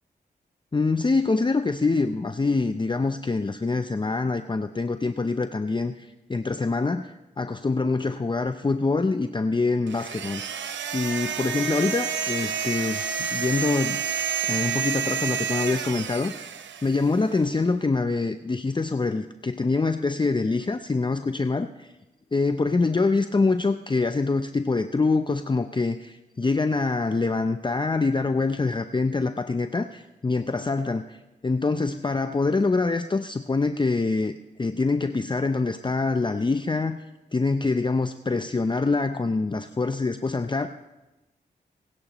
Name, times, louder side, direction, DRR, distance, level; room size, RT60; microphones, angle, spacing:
voice 1, 0.7-10.6 10.9-14.0 14.4-16.5 16.8-21.9 22.3-37.0 37.3-40.7, left 3 dB, 25° left, 9 dB, 0.6 m, -25 dB
sound 1, 9.9-17.2, right 7 dB, 80° right, 0.8 m, -29 dB
26.0 x 10.5 x 3.1 m, 1.0 s
supercardioid pair, 45°, 19 cm